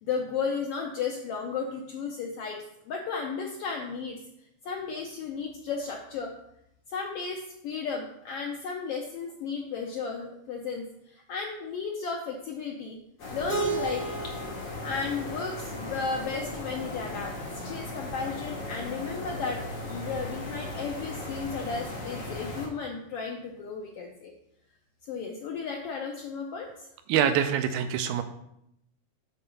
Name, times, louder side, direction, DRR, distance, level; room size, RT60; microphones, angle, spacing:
voice 1, 0.0-4.2 4.6-6.3 6.9-13.0 13.3-14.4 14.8-24.3 25.1-26.9, left 5 dB, 85° left, 1 dB, 1.3 m, -34 dB
sound 1, 13.2-22.7, left 2 dB, 70° left, 3.3 m, -37 dB
Keyboard (musical), 13.5-16.4, right 4 dB, 55° right, 0.4 m, -35 dB
voice 2, 27.1-28.2, right 9 dB, 85° right, 9 dB, 2.0 m, -25 dB
7.0 x 3.8 x 5.6 m, 0.78 s
omnidirectional pair, 3.5 m